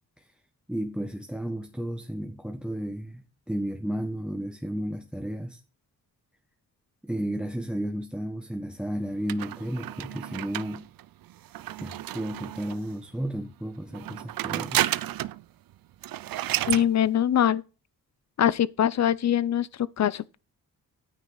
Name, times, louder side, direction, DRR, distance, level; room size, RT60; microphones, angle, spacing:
voice 1, 0.7-5.6 7.0-10.8 11.8-14.9, equal, 5° right, 1.3 m, -33 dB
sound 1, 9.3-12.9 13.9-15.4 15.7-15.8 16.0-16.9, right 14 dB, 70° right, 0.6 m, -31 dB
voice 2, 16.7-17.6 18.4-20.4, left 10 dB, 50° left, 0.7 m, -23 dB
9.4 x 9.1 x 4.0 m
cardioid pair, 95°, 36 cm